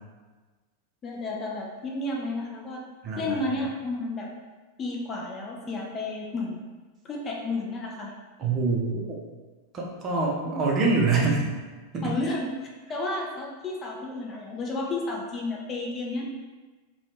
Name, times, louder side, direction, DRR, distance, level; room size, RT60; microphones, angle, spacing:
voice 1, 1.0-2.8 3.2-4.3 4.8-6.6 7.0-8.1 10.5-10.6 12.0-16.2, left 2 dB, 25° left, -1 dB, 0.5 m, -32 dB
voice 2, 3.0-3.5 8.4-9.2 9.7-11.5 11.9-12.1, right 3 dB, 30° right, -1 dB, 0.6 m, -25 dB
2.9 x 2.3 x 3.3 m, 1.3 s
figure-of-eight pair, 90°, 0 cm